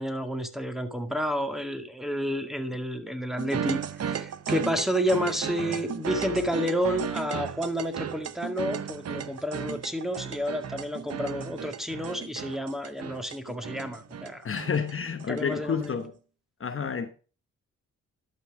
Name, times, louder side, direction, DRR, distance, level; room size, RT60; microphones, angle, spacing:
voice 1, 0.0-14.5 15.3-16.0, equal, ahead, 1.9 m, -30 dB
sound 1, 3.4-16.1, right 8 dB, 50° right, 0.9 m, -35 dB
voice 2, 14.4-16.2 16.6-17.1, left 6 dB, 40° left, 1.1 m, -30 dB
11.5 x 5.7 x 4.8 m
supercardioid pair, 60°, 32 cm